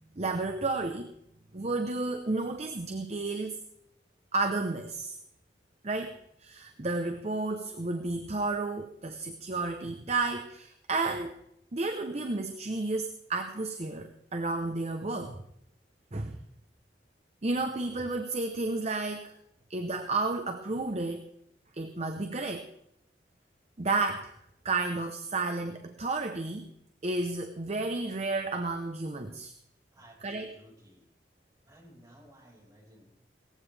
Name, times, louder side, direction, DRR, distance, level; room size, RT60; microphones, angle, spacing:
voice 1, 0.1-1.1 1.5-3.6 4.3-5.2 5.8-11.4 11.7-15.4 16.1-16.4 17.4-19.3 19.7-21.3 21.7-22.7 23.8-24.3 24.6-26.7 27.0-29.5 30.2-30.6, right 3 dB, 35° right, 6 dB, 0.8 m, -32 dB
voice 2, 29.9-31.1 31.7-33.1, equal, 20° right, -5 dB, 5.7 m, -56 dB
18.0 x 14.5 x 3.4 m, 0.76 s
head